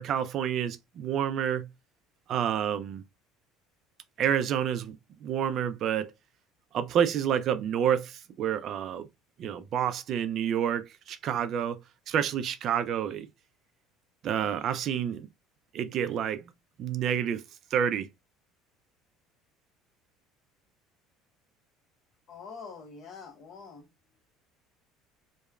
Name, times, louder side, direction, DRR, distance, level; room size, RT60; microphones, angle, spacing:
voice 1, 0.0-1.7 2.3-3.0 4.2-6.1 6.7-9.1 9.4-11.8 12.1-13.3 14.2-15.3 15.7-16.4 16.8-17.4 17.7-18.1, right 9 dB, 45° right, 0.3 m, -29 dB
voice 2, 22.3-23.8, left 5 dB, 45° left, 0.9 m, -45 dB
3.0 x 2.0 x 2.3 m
cardioid pair, 135°, 0 cm